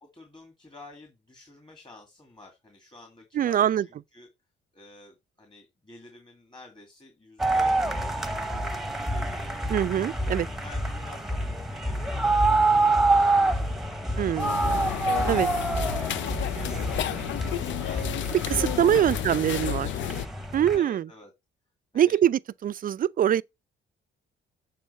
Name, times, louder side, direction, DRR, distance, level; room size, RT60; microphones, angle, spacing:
voice 1, 0.0-4.3 4.7-9.6 10.2-14.8 15.2-18.2 18.5-20.0 20.7-21.3 21.9-22.2, left 2 dB, 20° left, 2.1 m, -50 dB
voice 2, 3.3-3.8 9.7-10.5 14.2-14.6 15.3-15.5 18.5-19.9 20.5-21.0 21.9-23.4, right 10 dB, 45° right, 0.4 m, -23 dB
sound 1, 7.4-20.8, right 2 dB, ahead, 1.0 m, -27 dB
sound 2, 14.4-20.3, left 11 dB, 70° left, 0.5 m, -32 dB
7.4 x 3.8 x 5.5 m
cardioid pair, 90°, 20 cm